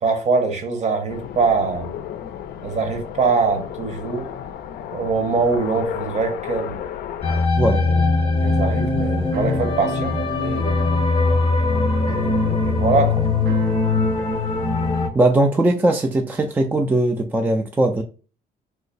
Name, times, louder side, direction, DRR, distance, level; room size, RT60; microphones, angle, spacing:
voice 1, 0.0-1.9 2.6-4.3 4.9-6.8 7.7-10.8 12.0-13.3, right 4 dB, 45° right, 0.9 m, -23 dB
sound 1, 1.1-7.5, left 9 dB, 65° left, 0.4 m, -33 dB
sound 2, 7.2-15.1, left 3 dB, 35° left, 0.7 m, -20 dB
Keyboard (musical), 8.4-15.1, right 6 dB, 60° right, 0.6 m, -39 dB
voice 2, 15.1-18.0, right 2 dB, 10° right, 0.3 m, -19 dB
3.2 x 2.0 x 3.8 m
cardioid pair, 110°, 17 cm